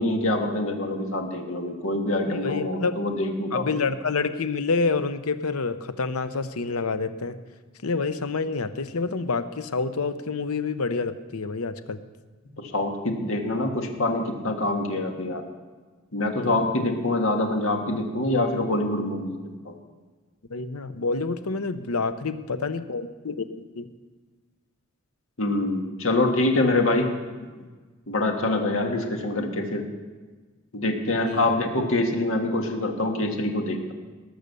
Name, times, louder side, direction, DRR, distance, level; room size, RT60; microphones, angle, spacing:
voice 1, 0.0-3.8 12.6-15.4 16.1-19.4 19.7-19.8 25.4-27.1 28.1-29.8 30.7-33.9, left 2 dB, 65° left, 3 dB, 1.8 m, -25 dB
voice 2, 2.3-2.9 3.5-7.4 7.8-12.0 16.5-16.6 20.5-23.9 31.2-31.4, left 4 dB, 90° left, 11 dB, 0.8 m, -28 dB
19.0 x 6.5 x 6.8 m, 1.4 s
head